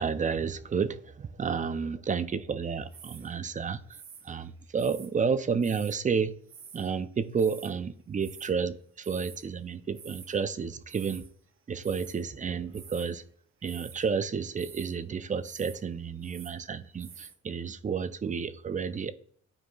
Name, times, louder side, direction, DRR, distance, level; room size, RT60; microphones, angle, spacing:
voice 1, 0.0-6.3 6.7-11.2 11.7-13.2 13.6-19.1, right 6 dB, 25° right, 0.4 m, -31 dB
sound 1, 2.9-3.3 3.9-5.1 5.6-6.0 6.5-6.9 7.2-7.7 8.2-8.5 9.0-9.5 9.8-10.4 10.9-11.3 11.8-12.3 12.7-13.2 13.6-14.1 14.6-15.0 15.4-15.8 16.1-16.6 17.0-17.3, right 7 dB, 45° right, 0.8 m, -49 dB
11.5 x 4.6 x 2.3 m
cardioid pair, 90°, 30 cm